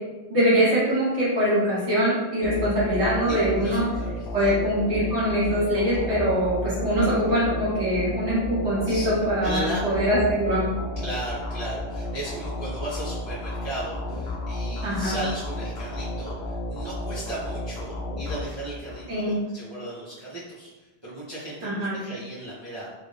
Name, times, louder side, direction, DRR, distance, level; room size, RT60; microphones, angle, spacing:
voice 1, 0.3-3.9 4.3-10.7 14.8-15.2 19.1-19.3 21.6-21.9, equal, 75° right, -11 dB, 1.9 m, -23 dB
sound 1, 2.4-19.0, left 1 dB, 65° left, 0.8 m, -32 dB
voice 2, 3.3-4.5 8.9-9.1 9.4-9.8 11.0-20.7 21.0-22.9, right 1 dB, 30° right, -9 dB, 0.7 m, -36 dB
3.6 x 2.5 x 3.3 m, 1.2 s
omnidirectional pair, 1.2 m